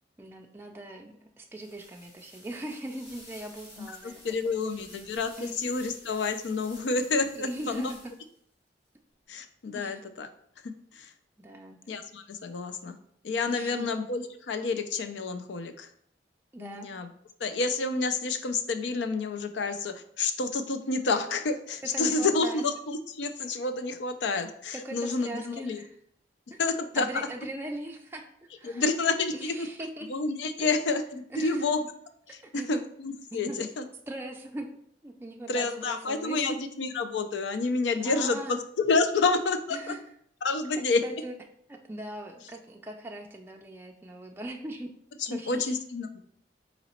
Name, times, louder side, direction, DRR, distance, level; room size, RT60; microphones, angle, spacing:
voice 1, 0.2-4.6 5.4-5.6 7.3-8.0 9.7-10.0 11.4-11.8 13.5-13.9 16.5-16.9 21.9-22.6 24.7-25.9 26.5-26.6 27.0-29.0 29.3-30.1 30.6-30.9 31.3-31.6 32.4-32.8 33.3-33.6 34.1-34.7 35.0-36.6 38.0-38.6 39.7-40.0 41.0-41.4 41.7-44.9 45.3-45.7, right 1 dB, 15° right, 1 dB, 0.3 m, -40 dB
sound 1, 1.5-8.4, left 1 dB, 35° left, 1.3 m, -52 dB
voice 2, 3.8-7.9 9.3-10.3 10.6-11.1 11.9-13.0 13.2-15.9 16.6-17.1 17.4-25.8 26.6-27.1 28.6-29.7 30.1-31.9 32.3-33.8 35.5-39.9 40.4-41.0 45.2-46.2, left 3 dB, 85° left, 9 dB, 0.5 m, -29 dB
3.9 x 3.0 x 4.2 m, 0.67 s
head